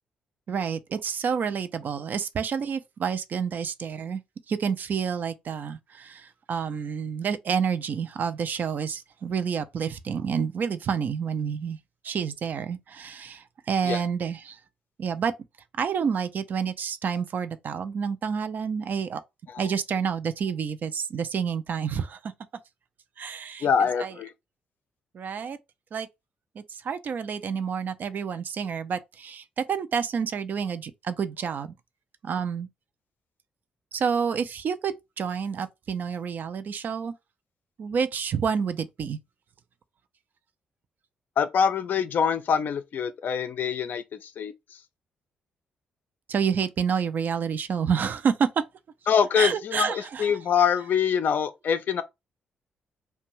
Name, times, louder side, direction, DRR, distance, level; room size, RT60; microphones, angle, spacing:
voice 1, 0.5-4.2 4.5-11.8 12.0-14.6 15.0-15.3 15.8-19.2 19.6-22.3 23.2-23.7 24.0-24.1 25.1-25.6 25.9-26.1 26.6-31.7 32.2-32.7 33.9-37.1 37.8-39.2 46.3-48.6 49.4-50.3, right 6 dB, 55° right, 0.4 m, -29 dB
voice 2, 23.6-24.3 41.4-44.5 49.1-52.0, left 7 dB, 55° left, 0.4 m, -24 dB
2.5 x 2.2 x 3.0 m
hypercardioid pair, 40°, 4 cm